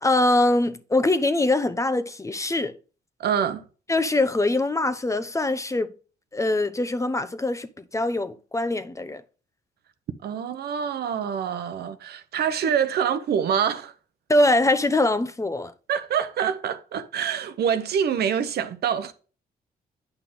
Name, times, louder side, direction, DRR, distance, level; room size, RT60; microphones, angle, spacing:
voice 1, 0.0-2.8 3.9-5.9 6.3-9.2 14.3-15.7, left 2 dB, 20° left, 0.8 m, -23 dB
voice 2, 3.2-3.7 10.2-13.9 15.9-19.1, right 8 dB, 80° right, 0.9 m, -26 dB
9.4 x 5.6 x 3.6 m
cardioid pair, 90°, 16 cm